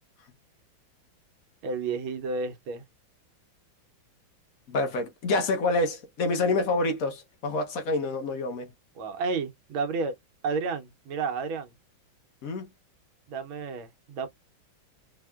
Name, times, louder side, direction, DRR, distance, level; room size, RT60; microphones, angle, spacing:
voice 1, 1.6-2.8 9.0-10.1 10.4-11.7 13.3-14.3, right 4 dB, 85° right, 1.6 m, -31 dB
voice 2, 4.7-8.7 12.4-12.7, left 2 dB, 50° left, 1.3 m, -27 dB
4.1 x 3.5 x 2.3 m
omnidirectional pair, 2.2 m